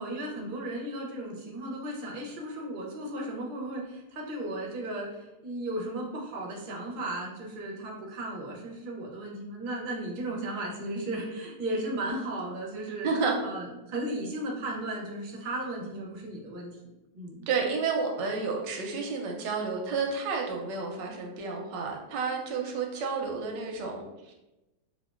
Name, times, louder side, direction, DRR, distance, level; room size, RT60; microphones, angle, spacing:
voice 1, 0.0-13.1 13.4-17.4, right 1 dB, 55° right, -2 dB, 0.5 m, -35 dB
voice 2, 13.0-13.4 17.5-24.3, right 4 dB, 90° right, 1 dB, 1.3 m, -31 dB
4.4 x 2.2 x 2.4 m, 0.99 s
omnidirectional pair, 1.9 m